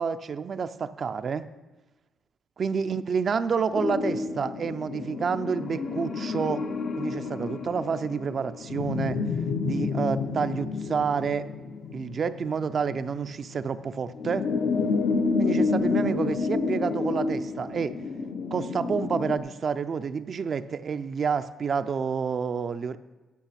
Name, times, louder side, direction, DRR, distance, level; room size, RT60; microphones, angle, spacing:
voice 1, 0.0-1.4 2.6-6.6 7.0-9.2 9.6-11.4 11.9-14.4 15.4-17.9 18.5-23.0, right 6 dB, 45° right, 11 dB, 0.4 m, -29 dB
sound 1, 3.7-19.4, left 4 dB, 60° left, 0.7 m, -29 dB
10.5 x 5.9 x 5.8 m, 1.2 s
cardioid pair, 90°, 0 cm